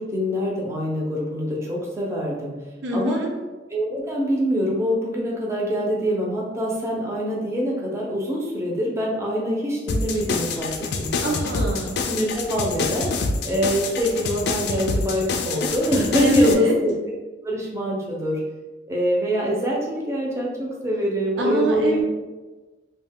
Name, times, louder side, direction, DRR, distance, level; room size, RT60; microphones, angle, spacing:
voice 1, 0.0-2.5 2.9-3.2 3.7-11.4 12.0-13.1 13.4-17.0 17.4-18.4 18.9-22.0, equal, 15° right, -3 dB, 0.5 m, -24 dB
voice 2, 2.8-3.3 11.2-12.0 16.2-16.7 21.4-22.0, right 1 dB, 75° right, 0 dB, 0.5 m, -25 dB
sound 1, 9.9-16.5, left 3 dB, 60° left, 0.3 m, -27 dB
2.4 x 2.1 x 3.4 m, 1.2 s
head